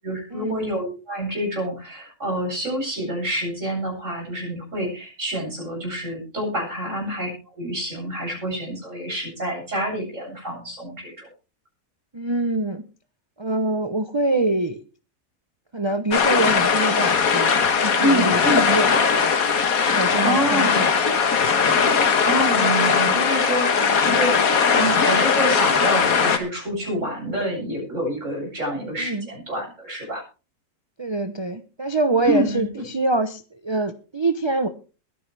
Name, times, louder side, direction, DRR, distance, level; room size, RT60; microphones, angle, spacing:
voice 1, 0.0-11.3 18.0-18.7 20.2-20.8 22.2-24.3 24.7-30.2 32.2-32.8, right 1 dB, 55° right, -2 dB, 8.4 m, -27 dB
voice 2, 12.1-12.8 13.4-14.8 15.7-19.3 19.9-21.3 21.6-21.7 23.8-24.0 29.0-29.3 31.0-34.7, right 2 dB, 25° right, 9 dB, 0.7 m, -25 dB
sound 1, 16.1-26.4, left 6 dB, 70° left, 1.8 m, -19 dB
21.5 x 10.0 x 3.4 m, 0.34 s
omnidirectional pair, 1.6 m